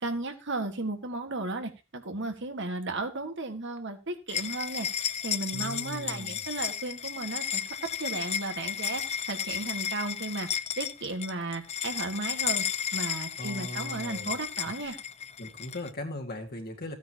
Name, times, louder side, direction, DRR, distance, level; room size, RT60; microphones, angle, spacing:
voice 1, 0.0-7.6 8.0-12.6 12.9-15.0, right 2 dB, 60° right, 6 dB, 1.8 m, -35 dB
sound 1, 4.3-15.9, left 8 dB, 30° left, 0.5 m, -33 dB
voice 2, 5.5-6.4 13.4-14.4 15.4-16.9, left 1 dB, 50° left, 3 dB, 2.1 m, -38 dB
15.5 x 9.3 x 3.0 m, 0.27 s
head